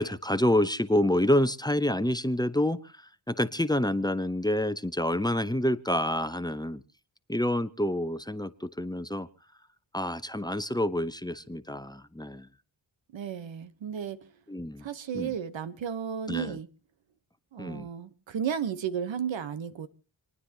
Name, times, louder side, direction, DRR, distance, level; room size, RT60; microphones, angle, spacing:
voice 1, 0.0-6.8 7.3-9.3 9.9-12.5 14.5-14.8 15.1-15.3 16.3-16.6 17.6-17.9, left 1 dB, 10° left, 0.8 m, -28 dB
voice 2, 13.1-14.2 14.8-16.7 17.5-19.9, right 8 dB, 80° right, 1.1 m, -33 dB
29.0 x 9.7 x 2.9 m
cardioid pair, 55°, 45 cm